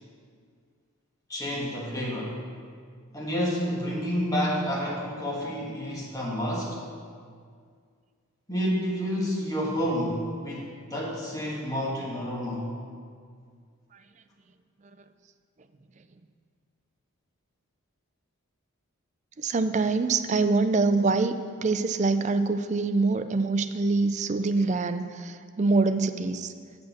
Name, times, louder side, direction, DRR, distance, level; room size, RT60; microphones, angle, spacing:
voice 1, 1.3-2.4 3.1-6.8 8.5-12.7, equal, 15° left, -4 dB, 1.5 m, -29 dB
voice 2, 19.4-21.4 21.6-26.5, right 3 dB, 35° right, 10 dB, 0.4 m, -25 dB
8.0 x 6.7 x 6.8 m, 2.1 s
head